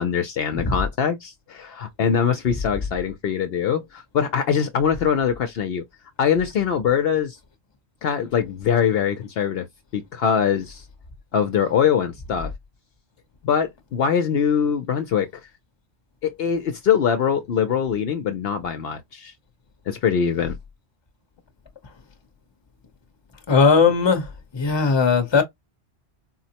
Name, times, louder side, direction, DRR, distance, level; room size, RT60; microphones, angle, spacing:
voice 1, 0.0-5.8 6.2-7.4 8.0-9.7 9.9-10.8 11.3-12.5 13.4-15.3 16.2-19.3 19.9-20.6, left 7 dB, 65° left, 0.8 m, -23 dB
voice 2, 23.5-24.2 24.5-25.4, left 5 dB, 25° left, 0.8 m, -18 dB
4.2 x 2.0 x 2.8 m
omnidirectional pair, 1.1 m